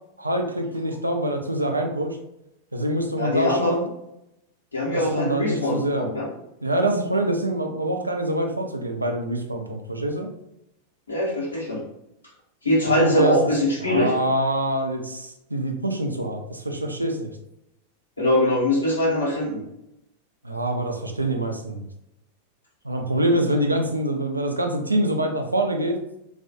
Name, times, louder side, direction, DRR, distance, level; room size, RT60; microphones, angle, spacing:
voice 1, 0.2-2.2 2.7-3.9 4.9-6.1 6.6-10.3 12.8-13.4 13.9-17.3 20.4-21.8 22.8-26.0, right 1 dB, 85° right, 3 dB, 0.3 m, -25 dB
voice 2, 3.2-3.8 4.7-6.3 11.1-11.8 12.6-14.1 18.2-19.6, left 1 dB, 80° left, -5 dB, 0.9 m, -22 dB
2.3 x 2.2 x 2.6 m, 0.83 s
figure-of-eight pair, 90°, 0 cm